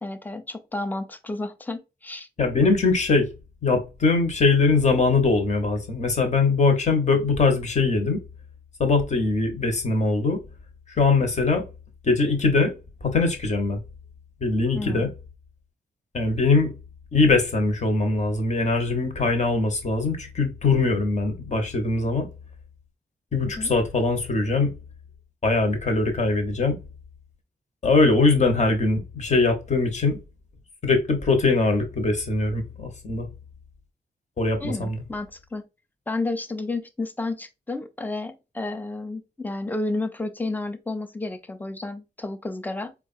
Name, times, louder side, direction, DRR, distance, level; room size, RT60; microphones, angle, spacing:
voice 1, 0.0-2.3 14.7-15.1 23.4-23.7 34.6-35.6 36.1-42.9, left 2 dB, 10° left, 0.5 m, -31 dB
voice 2, 2.4-3.3 3.6-8.2 8.8-10.4 11.0-11.6 12.0-12.7 13.1-13.8 14.4-15.1 16.1-16.7 17.1-22.3 23.3-24.7 25.4-26.8 27.8-30.2 30.8-33.3 34.4-35.0, left 3 dB, 45° left, 1.1 m, -21 dB
4.6 x 2.4 x 2.5 m
wide cardioid pair, 160°, 17 cm